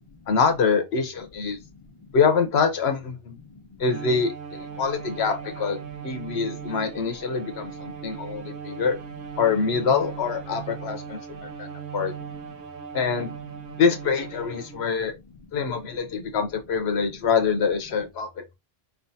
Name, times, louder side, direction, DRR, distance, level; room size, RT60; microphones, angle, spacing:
voice 1, 0.3-1.6 2.1-3.4 3.8-9.0 9.4-12.1 12.9-13.3 13.8-15.1 15.5-18.5, left 5 dB, 90° left, 1.1 m, -25 dB
voice 2, 1.6-2.2 3.4-3.7 4.8-4.9 6.3-6.8 7.6-8.6 11.3-11.5 12.2-12.6 13.7-13.8 15.1-15.2 16.1-16.2, left 4 dB, 30° left, 1.1 m, -50 dB
Bowed string instrument, 3.8-15.0, right 8 dB, 55° right, 0.9 m, -38 dB
4.9 x 3.5 x 2.6 m
omnidirectional pair, 1.1 m